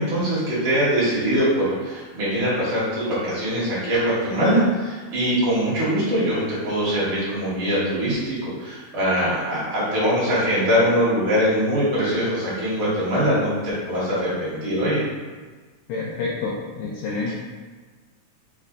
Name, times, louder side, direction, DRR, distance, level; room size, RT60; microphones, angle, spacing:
voice 1, 0.0-13.5 13.9-15.0 17.3-17.4, equal, 50° right, -9 dB, 1.8 m, -22 dB
voice 2, 15.9-17.3, left 4 dB, 85° left, -5 dB, 1.6 m, -28 dB
5.1 x 4.1 x 2.5 m, 1.4 s
omnidirectional pair, 3.9 m